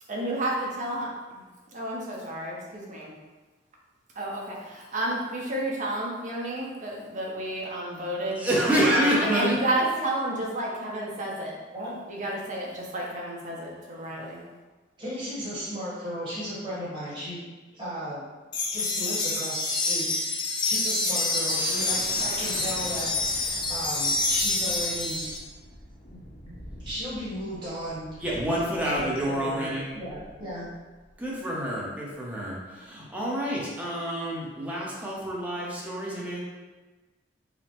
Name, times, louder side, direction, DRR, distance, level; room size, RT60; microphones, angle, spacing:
voice 1, 0.1-1.4 1.7-3.1 4.1-8.5 8.8-11.6 12.1-14.4, right 1 dB, 40° right, -3 dB, 0.7 m, -31 dB
voice 2, 8.4-9.5 14.1-14.2 28.2-29.9 31.2-36.4, equal, 10° right, -5 dB, 0.7 m, -28 dB
voice 3, 15.0-17.4 17.7-18.2 18.7-25.3 26.1-26.2 26.8-28.1 28.5-30.7, equal, 25° right, -10 dB, 1.3 m, -35 dB
sound 1, 18.5-25.4, left 3 dB, 25° left, 0.4 m, -27 dB
sound 2, 20.6-31.4, equal, 55° left, 0.9 m, -45 dB
5.0 x 2.1 x 2.9 m, 1.2 s
head